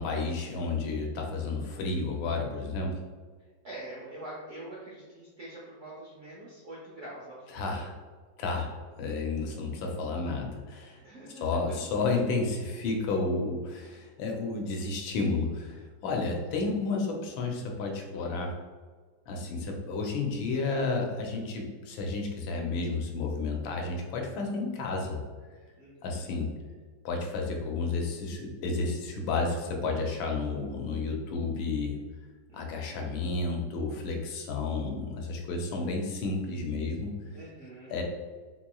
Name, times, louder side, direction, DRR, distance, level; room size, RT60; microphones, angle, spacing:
voice 1, 0.0-3.0 7.5-7.9 8.4-8.7 9.0-11.0 11.4-18.5 19.3-25.2 26.0-26.5 27.0-32.0 32.5-37.1 37.9-38.0, left 3 dB, 85° left, 1 dB, 1.4 m, -31 dB
voice 2, 3.6-7.4 11.0-11.9 25.8-26.4 32.5-33.1 35.4-35.9 37.3-38.0, right 1 dB, 70° right, -6 dB, 0.7 m, -45 dB
4.1 x 3.0 x 2.2 m, 1.5 s
omnidirectional pair, 2.1 m